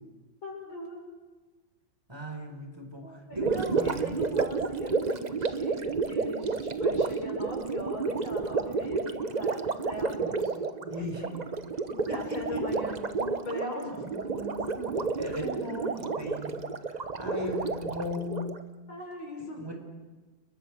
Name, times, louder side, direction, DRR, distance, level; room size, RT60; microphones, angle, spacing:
voice 1, 0.4-1.0 3.0-11.4 12.0-14.2 17.3-17.7 18.9-19.7, left 1 dB, 85° left, 1 dB, 7.3 m, -39 dB
voice 2, 2.1-4.1 10.9-11.2 11.9-12.0 12.3-12.6 13.9-16.6 16.9-18.6 19.6-19.7, left 1 dB, 10° right, 3 dB, 4.8 m, -37 dB
Gurgling, 3.3-18.6, right 4 dB, 35° right, 0.7 m, -31 dB
30.0 x 22.0 x 6.3 m, 1.3 s
omnidirectional pair, 2.1 m